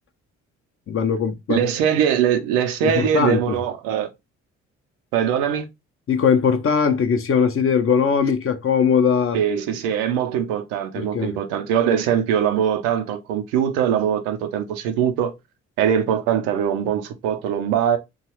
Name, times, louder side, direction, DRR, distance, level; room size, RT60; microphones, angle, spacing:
voice 1, 0.9-1.6 2.8-3.6 6.1-9.4 11.0-11.4, left 6 dB, 35° left, 0.6 m, -20 dB
voice 2, 1.5-4.1 5.1-5.6 9.3-15.3 15.8-18.0, right 9 dB, 75° right, 0.6 m, -22 dB
3.0 x 2.3 x 2.9 m
hypercardioid pair, 45°, 37 cm